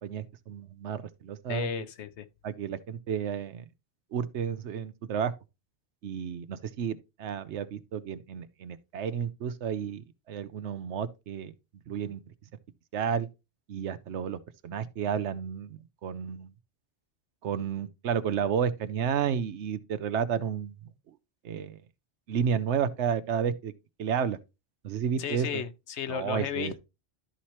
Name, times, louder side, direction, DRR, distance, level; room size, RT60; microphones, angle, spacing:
voice 1, 0.0-1.7 2.4-3.7 4.1-5.3 6.0-11.5 11.9-12.2 12.9-13.3 13.7-14.4 14.6-16.5 17.4-20.7 21.4-21.8 22.3-23.7 24.0-24.4 24.8-25.6 26.1-26.7, right 7 dB, 90° right, 1.0 m, -31 dB
voice 2, 1.5-2.3 25.2-26.8, left 8 dB, 90° left, 1.0 m, -34 dB
12.5 x 4.3 x 3.0 m
omnidirectional pair, 1.1 m